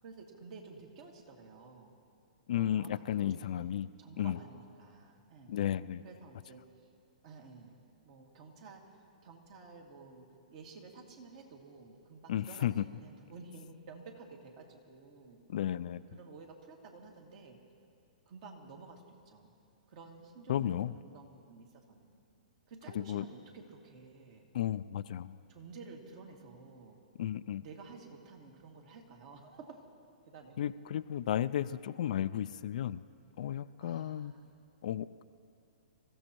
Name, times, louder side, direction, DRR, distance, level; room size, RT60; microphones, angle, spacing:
voice 1, 0.0-1.9 2.5-5.5 6.0-6.6 7.2-15.4 16.1-17.6 18.3-19.5 19.9-22.1 22.7-24.5 25.5-27.0 27.6-29.8 30.3-30.6 33.8-34.5, right 4 dB, 50° right, 1 dB, 2.3 m, -52 dB
voice 2, 2.5-3.9 4.2-4.4 5.5-6.0 12.3-12.8 15.5-16.0 20.5-20.9 23.0-23.2 24.5-25.4 27.2-27.6 30.6-33.0 33.4-34.3 34.8-35.2, left 11 dB, 60° left, 14 dB, 0.4 m, -33 dB
26.5 x 14.5 x 3.0 m, 2.4 s
hypercardioid pair, 125°, 4 cm